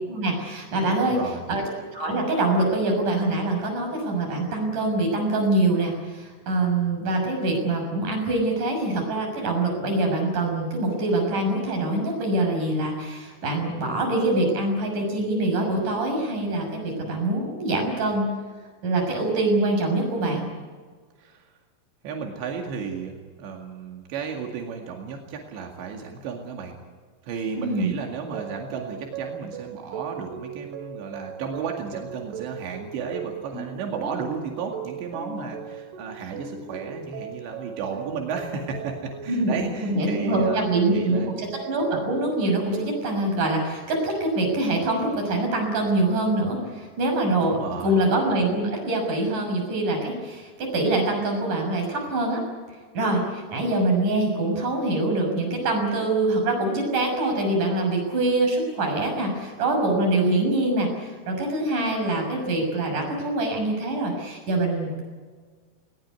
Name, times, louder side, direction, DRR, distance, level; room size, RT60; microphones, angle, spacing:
voice 1, 0.1-1.6 1.9-18.3 18.8-20.5 27.6-27.9 39.3-47.6 47.8-52.4 52.9-65.0, right 2 dB, 45° right, 1 dB, 7.9 m, -24 dB
voice 2, 1.0-1.4 21.2-21.4 22.0-26.8 27.3-41.3 47.4-48.0, right 5 dB, 90° right, 1 dB, 4.5 m, -33 dB
sound 1, 28.3-43.1, right 6 dB, 70° right, 3.8 m, -38 dB
20.0 x 19.5 x 9.6 m, 1.5 s
omnidirectional pair, 4.9 m